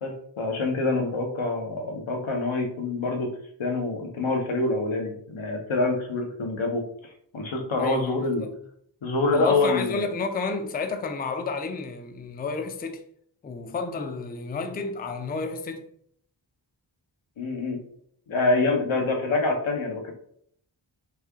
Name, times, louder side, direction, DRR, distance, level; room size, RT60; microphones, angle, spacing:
voice 1, 0.0-3.3 3.6-6.8 7.3-8.4 9.0-10.1 17.4-17.8 18.3-20.1, left 3 dB, 85° left, 0.8 m, -26 dB
voice 2, 7.8-8.5 9.3-13.0 13.4-15.9, left 4 dB, 20° left, 0.3 m, -31 dB
3.2 x 2.2 x 3.5 m
wide cardioid pair, 65°, 47 cm